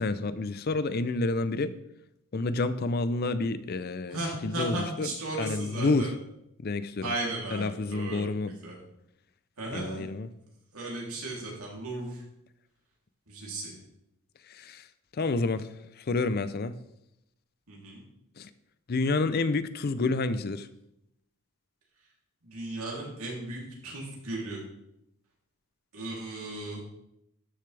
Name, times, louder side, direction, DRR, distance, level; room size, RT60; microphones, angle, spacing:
voice 1, 0.0-1.7 2.3-5.1 5.4-6.1 6.6-7.1 7.5-8.5 9.7-10.3 14.5-14.9 15.2-15.7 16.0-16.7 18.4-18.5 18.9-20.7, left 3 dB, 45° left, 14 dB, 0.5 m, -29 dB
voice 2, 4.1-6.1 7.0-8.8 9.6-10.1 10.7-12.2 13.3-13.8 17.7-18.0 22.4-24.6 25.9-26.8, right 2 dB, 80° right, -3 dB, 3.1 m, -36 dB
12.5 x 6.8 x 3.3 m, 0.81 s
head